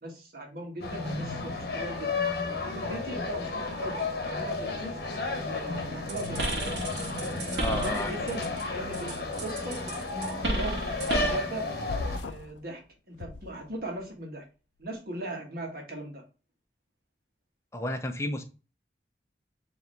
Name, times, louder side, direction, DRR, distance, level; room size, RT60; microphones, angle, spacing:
voice 1, 0.0-2.2 2.6-5.0 5.3-6.7 7.6-8.4 8.7-9.8 10.4-10.8 11.3-11.7 12.2-12.8 13.1-14.4 14.8-16.2, right 1 dB, 55° right, 0 dB, 1.6 m, -38 dB
sound 1, 0.8-12.2, left 3 dB, 60° left, 0.9 m, -33 dB
sound 2, 6.1-8.6 8.9-11.5, right 1 dB, 75° right, 1.4 m, -33 dB
voice 2, 7.6-8.1 17.7-18.4, left 1 dB, 15° left, 5 dB, 0.6 m, -31 dB
sound 3, 11.9-12.6 13.1-14.1, left 3 dB, 85° left, 0.4 m, -38 dB
4.8 x 2.9 x 3.2 m, 0.33 s
head